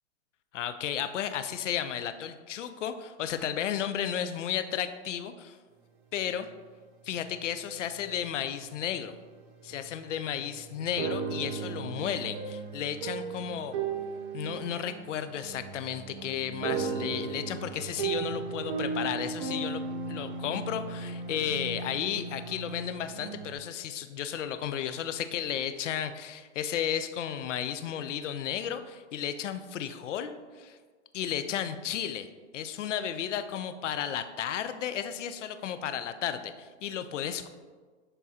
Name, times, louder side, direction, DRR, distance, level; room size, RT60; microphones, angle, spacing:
voice 1, 0.5-5.6 6.1-6.5 7.0-9.1 9.6-13.8 14.3-19.8 20.1-30.8 31.1-32.3 32.5-37.5, left 9 dB, 90° left, 10 dB, 0.6 m, -33 dB
sound 1, 9.7-9.8 10.4-23.5, right 5 dB, 40° right, 0.8 m, -36 dB
11.0 x 3.7 x 2.8 m, 1.5 s
hypercardioid pair, 155°, 35 cm